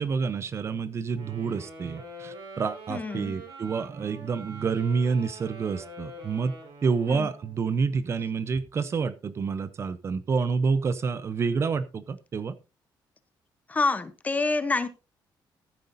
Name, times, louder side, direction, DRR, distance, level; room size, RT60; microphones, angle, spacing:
voice 1, 0.0-6.5 6.8-12.5, right 5 dB, 35° right, 0.6 m, -28 dB
Wind instrument woodwind instrument, 1.1-7.6, right 2 dB, 60° right, 5.5 m, -45 dB
voice 2, 2.9-3.4 7.1-7.3 13.7-14.9, left 3 dB, 20° left, 0.8 m, -27 dB
15.0 x 9.4 x 2.6 m
cardioid pair, 160°, 8 cm